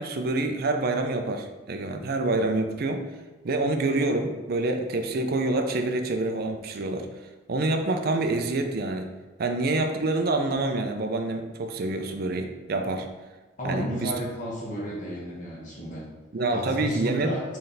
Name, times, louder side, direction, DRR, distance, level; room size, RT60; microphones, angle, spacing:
voice 1, 0.0-3.0 3.4-7.1 7.5-9.1 9.4-13.1 13.6-14.1 16.3-17.3, right 2 dB, 50° right, 5 dB, 0.5 m, -27 dB
voice 2, 13.6-16.1 16.5-17.4, equal, 40° left, -5 dB, 1.2 m, -33 dB
4.1 x 3.3 x 3.9 m, 1.2 s
head